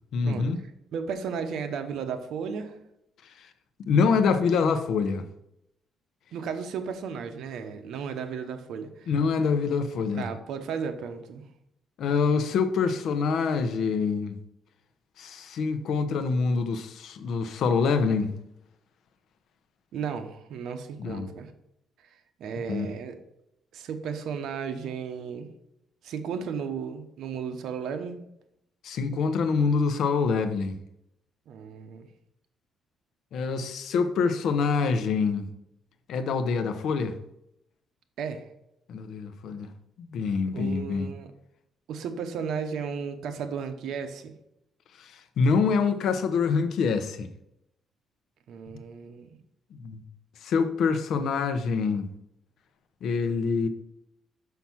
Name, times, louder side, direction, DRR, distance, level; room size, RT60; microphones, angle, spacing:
voice 1, 0.1-0.6 3.4-3.5 3.9-5.2 9.1-10.3 12.0-14.3 15.2-18.3 21.0-21.3 22.7-22.9 28.8-30.7 33.3-35.5 36.1-37.1 38.9-39.7 40.0-41.1 45.0-47.3 49.7-50.0 50.4-52.1 53.0-53.7, left 5 dB, 65° left, 0.8 m, -25 dB
voice 2, 0.9-2.8 6.3-9.1 10.2-11.5 19.9-21.5 22.4-23.2 23.7-25.5 26.0-28.2 31.5-32.1 38.2-38.5 40.5-41.3 41.9-44.3 48.5-49.4, right 6 dB, 70° right, 1.0 m, -34 dB
6.0 x 5.8 x 5.8 m
cardioid pair, 135°, 0 cm